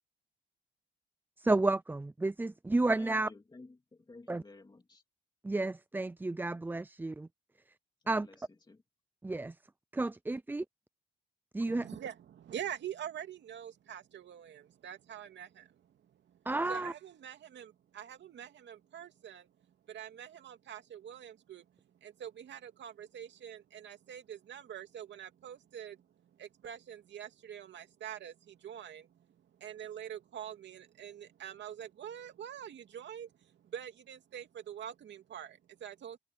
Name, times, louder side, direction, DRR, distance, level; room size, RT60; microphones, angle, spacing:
voice 1, 1.4-3.3 4.3-4.4 5.4-7.3 8.1-8.3 9.2-9.6 9.9-10.7 11.5-11.9 16.5-16.9, right 2 dB, 10° right, 0.4 m, -31 dB
voice 2, 3.0-5.0 8.2-8.8, left 3 dB, 20° left, 2.8 m, -53 dB
voice 3, 11.7-16.4 16.7-19.5 19.9-21.7 22.0-36.2, right 9 dB, 65° right, 2.5 m, -45 dB
cardioid pair, 90°, 20 cm